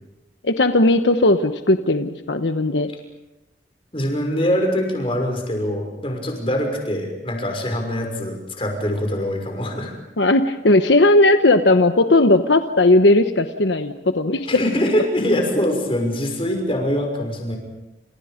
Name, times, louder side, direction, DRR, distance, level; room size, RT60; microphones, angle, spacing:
voice 1, 0.4-2.9 10.2-14.6, left 2 dB, 80° left, 8 dB, 1.2 m, -17 dB
voice 2, 3.9-9.9 14.5-17.6, left 1 dB, 30° left, 3 dB, 6.0 m, -23 dB
29.5 x 28.5 x 5.2 m, 1.0 s
head